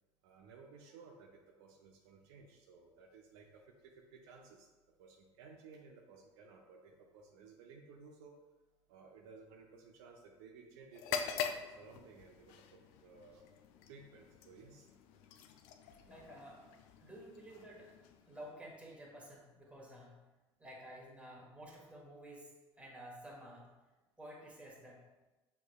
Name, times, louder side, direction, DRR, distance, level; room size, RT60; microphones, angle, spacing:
voice 1, 0.2-1.3 1.6-4.7 5.0-8.3 8.9-13.4 13.9-14.9, right 4 dB, 70° right, 1 dB, 0.5 m, -57 dB
sound 1, 10.9-18.7, left 7 dB, 65° left, 0.4 m, -45 dB
voice 2, 16.0-16.6 17.0-17.9 18.3-20.2 20.6-22.5 22.8-23.7 24.2-25.0, right 1 dB, 10° right, -2 dB, 1.3 m, -52 dB
6.1 x 3.2 x 2.3 m, 1.1 s
hypercardioid pair, 65°, 15 cm